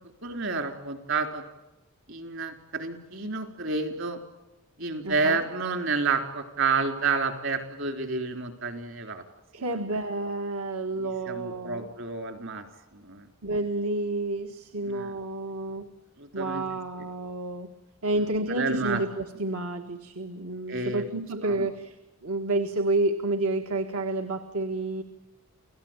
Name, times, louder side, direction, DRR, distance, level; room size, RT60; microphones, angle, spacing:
voice 1, 0.2-1.4 2.1-4.2 4.8-9.2 11.0-12.6 12.9-13.3 14.9-15.1 16.2-16.6 18.5-19.0 20.7-21.0 21.4-21.7, right 4 dB, 60° right, 6 dB, 3.7 m, -30 dB
voice 2, 5.0-5.4 9.5-11.9 13.4-15.9 16.3-17.7 18.0-25.0, right 2 dB, 80° right, 6 dB, 1.6 m, -30 dB
29.5 x 17.5 x 8.9 m, 1.0 s
head